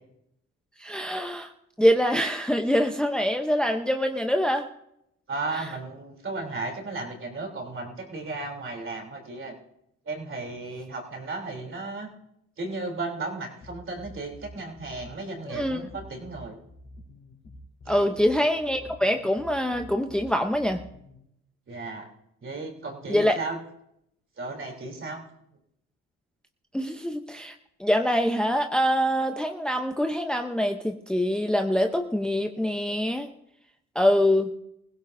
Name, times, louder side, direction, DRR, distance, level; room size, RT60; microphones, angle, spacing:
voice 1, 0.8-1.5 1.8-4.7 5.5-5.7 15.5-15.8 17.9-20.8 23.1-23.4 26.7-27.5 27.8-33.3 33.9-34.5, equal, 5° left, 5 dB, 0.8 m, -24 dB
voice 2, 5.3-9.5 10.1-12.1 12.6-16.6 17.9-18.2 21.7-22.1 22.4-23.6 24.4-25.2, right 3 dB, 40° right, 1 dB, 3.5 m, -35 dB
sound 1, 13.6-21.2, left 1 dB, 45° left, 4.2 m, -47 dB
21.5 x 16.0 x 2.7 m, 0.79 s
cardioid pair, 90°, 30 cm